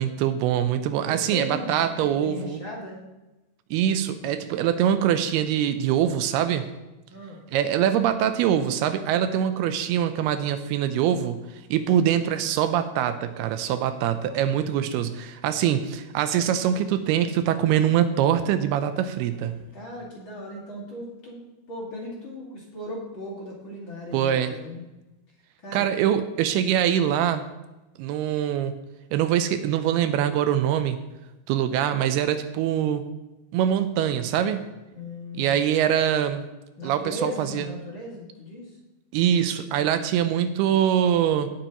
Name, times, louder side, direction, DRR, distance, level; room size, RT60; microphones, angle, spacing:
voice 1, 0.0-2.6 3.7-6.7 7.5-11.5 11.7-19.6 24.1-24.6 25.7-27.4 28.0-28.7 29.1-31.0 31.5-33.1 33.5-34.6 35.3-36.4 36.8-37.7 39.1-41.5, right 10 dB, 85° right, 10 dB, 2.6 m, -23 dB
voice 2, 1.1-3.0 7.1-7.4 19.7-24.9 25.6-25.9 34.9-35.6 36.8-38.8, left 1 dB, 40° left, -4 dB, 2.1 m, -37 dB
17.5 x 7.9 x 3.0 m, 1.0 s
omnidirectional pair, 4.6 m